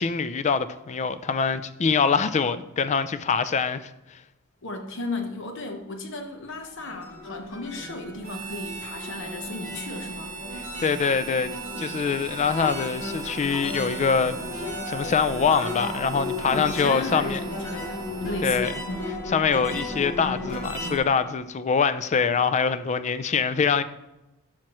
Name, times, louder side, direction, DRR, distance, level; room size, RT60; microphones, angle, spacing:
voice 1, 0.0-3.9 10.8-11.5 11.8-14.4 14.9-17.4 18.4-18.7 19.3-23.8, left 5 dB, 35° left, 0.4 m, -24 dB
voice 2, 4.6-10.3 16.5-19.1, left 2 dB, 60° left, 1.0 m, -34 dB
sound 1, 6.6-21.0, left 2 dB, 80° left, 2.6 m, -35 dB
Harmonica, 8.2-19.3, right 6 dB, 45° right, 1.1 m, -41 dB
12.0 x 5.8 x 3.0 m
head